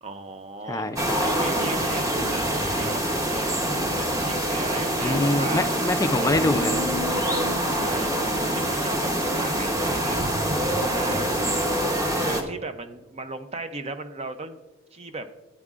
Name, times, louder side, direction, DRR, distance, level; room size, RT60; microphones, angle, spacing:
voice 1, 0.0-0.9 1.2-3.5 4.0-5.7 6.2-6.4 7.7-8.1 8.5-10.2 10.6-11.4 12.1-14.6 14.9-15.3, right 3 dB, 30° right, 9 dB, 0.6 m, -36 dB
voice 2, 0.7-1.3 5.0-6.8, left 2 dB, 15° left, 8 dB, 0.4 m, -24 dB
sound 1, 1.0-12.4, right 1 dB, 15° right, 0.9 m, -25 dB
14.5 x 8.8 x 2.4 m, 1.1 s
head